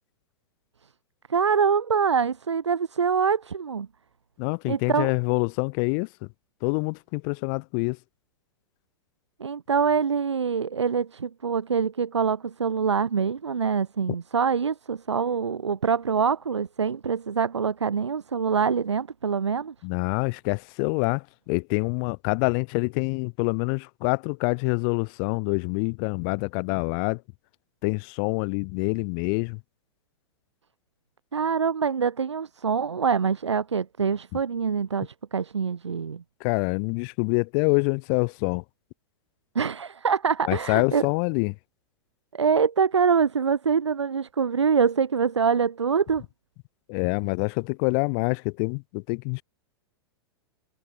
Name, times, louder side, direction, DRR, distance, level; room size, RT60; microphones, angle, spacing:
voice 1, 1.3-3.9 4.7-5.1 9.4-19.7 31.3-36.2 39.6-41.0 42.3-46.2, right 6 dB, 85° right, 3.9 m, -25 dB
voice 2, 4.4-6.1 6.6-8.0 19.8-27.2 27.8-29.6 36.4-38.6 40.5-41.5 46.9-49.4, left 40 dB or more, 50° left, 6.0 m, -26 dB
hypercardioid pair, 105°, 14 cm